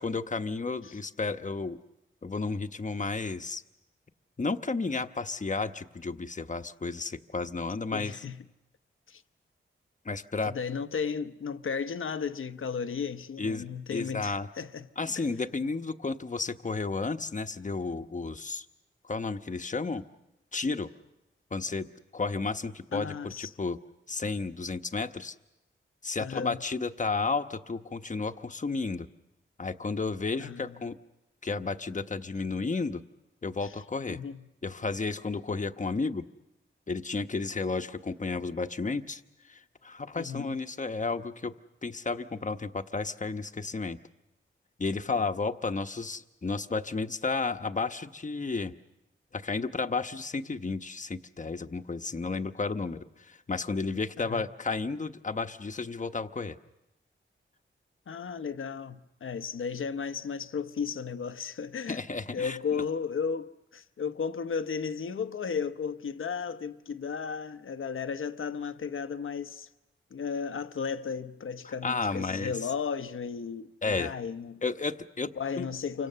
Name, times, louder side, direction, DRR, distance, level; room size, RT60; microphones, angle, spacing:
voice 1, 0.0-1.8 2.2-3.6 4.4-8.2 10.0-10.5 13.4-14.5 15.0-18.7 19.1-20.0 20.5-20.9 21.5-23.8 24.1-25.3 26.0-29.1 29.6-31.0 31.4-33.0 33.4-34.2 34.6-36.3 36.9-39.2 39.5-41.5 41.8-44.0 44.8-48.7 49.3-56.6 61.9-62.6 71.6-72.6 73.8-74.1 74.6-75.7, left 4 dB, 35° left, 1.1 m, -32 dB
voice 2, 7.9-8.4 9.1-9.2 10.4-14.9 15.2-15.3 22.9-23.5 26.2-26.6 30.4-30.8 33.6-33.7 34.1-34.5 40.1-40.6 45.1-45.2 54.2-54.5 58.1-62.0 62.3-69.7 70.1-74.6 75.4-76.1, left 6 dB, 75° left, 1.0 m, -34 dB
29.0 x 25.0 x 6.8 m
cardioid pair, 70°, 21 cm